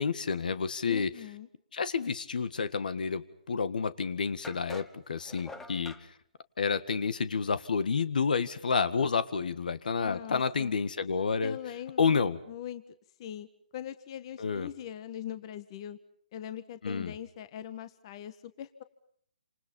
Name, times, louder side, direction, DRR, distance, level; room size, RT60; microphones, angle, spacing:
voice 1, 0.0-1.1 1.7-6.1 6.6-11.6 12.0-12.4 14.4-14.7 16.8-17.1, left 5 dB, 70° left, 13 dB, 1.8 m, -30 dB
voice 2, 0.8-1.5 10.0-10.8 11.4-12.8 13.2-13.5 13.7-16.0 16.3-18.8, left 10 dB, 35° left, 12 dB, 1.5 m, -41 dB
sound 1, 4.4-6.0, left 3 dB, 5° left, 1.1 m, -46 dB
29.0 x 27.0 x 5.6 m, 0.63 s
hypercardioid pair, 150°, 5 cm